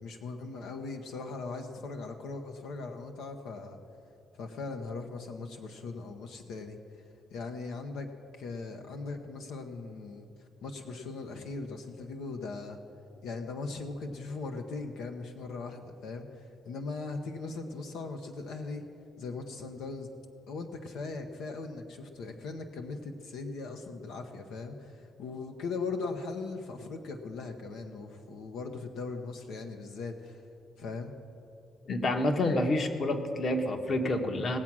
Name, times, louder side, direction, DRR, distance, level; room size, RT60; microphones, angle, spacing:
voice 1, 0.0-3.8 4.4-7.0 7.3-8.1 8.4-10.3 10.6-12.8 13.2-18.9 19.2-20.1 20.5-30.4 30.8-31.1, left 3 dB, 85° left, 4 dB, 0.8 m, -39 dB
voice 2, 31.8-34.6, left 1 dB, 45° left, 6 dB, 1.1 m, -28 dB
19.0 x 7.4 x 6.1 m, 2.8 s
cardioid pair, 90°, 0 cm